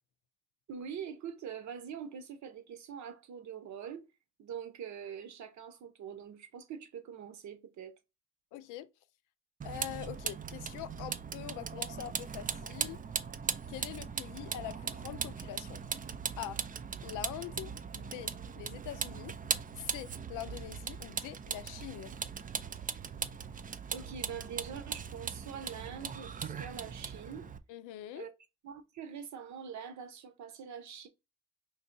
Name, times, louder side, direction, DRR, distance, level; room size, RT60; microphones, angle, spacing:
voice 1, 0.7-4.0 4.4-7.9 23.9-27.5 28.1-28.3 28.6-31.1, right 7 dB, 65° right, 1.0 m, -44 dB
voice 2, 8.5-8.9 9.6-13.0 13.7-15.8 16.4-16.6 17.0-19.4 19.9-22.2 27.7-28.3, left 12 dB, 90° left, 0.5 m, -44 dB
Vehicle, 9.6-27.6, right 7 dB, 30° right, 0.4 m, -39 dB
4.3 x 2.8 x 2.6 m
cardioid pair, 90°, 30 cm